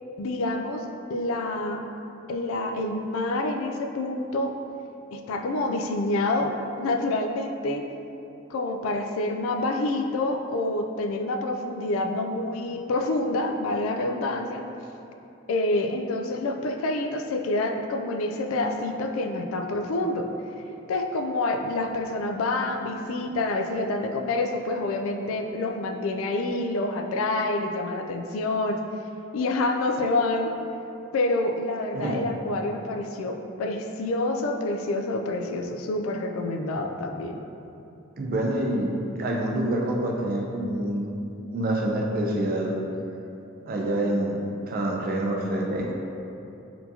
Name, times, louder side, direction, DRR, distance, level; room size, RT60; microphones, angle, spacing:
voice 1, 0.2-0.8 1.1-1.8 2.3-4.5 5.1-7.8 8.5-14.6 15.5-20.3 20.9-28.8 29.3-30.5 31.1-37.4, left 2 dB, 85° left, 4 dB, 0.3 m, -27 dB
voice 2, 38.2-41.2 41.5-42.8 43.7-45.9, right 1 dB, 45° right, 0 dB, 0.4 m, -27 dB
4.3 x 2.7 x 2.7 m, 2.8 s
head